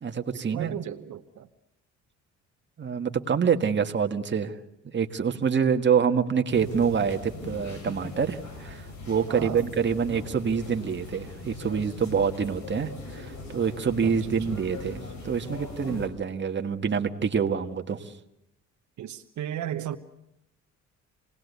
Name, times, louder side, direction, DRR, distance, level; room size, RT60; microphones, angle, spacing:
voice 1, 0.0-0.7 2.8-4.6 4.9-15.0 15.2-18.1, right 6 dB, 40° right, 1.7 m, -26 dB
voice 2, 0.5-1.5 9.3-9.6 14.0-14.8 19.0-20.0, right 11 dB, 70° right, 1.2 m, -35 dB
sound 1, 6.5-16.1, left 2 dB, 70° left, 7.0 m, -40 dB
27.5 x 19.5 x 8.3 m
cardioid pair, 90°, 30 cm